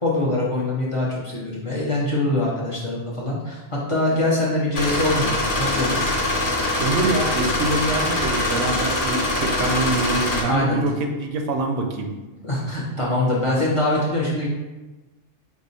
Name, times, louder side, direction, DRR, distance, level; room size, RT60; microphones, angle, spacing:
voice 1, 0.0-6.0 10.5-10.8 12.4-14.5, left 2 dB, 35° left, -5 dB, 0.6 m, -23 dB
sound 1, 4.7-10.4, left 1 dB, 70° left, 1.2 m, -23 dB
voice 2, 6.8-12.1, right 2 dB, 80° right, 4 dB, 0.9 m, -25 dB
4.8 x 2.0 x 4.0 m, 1.1 s
omnidirectional pair, 1.2 m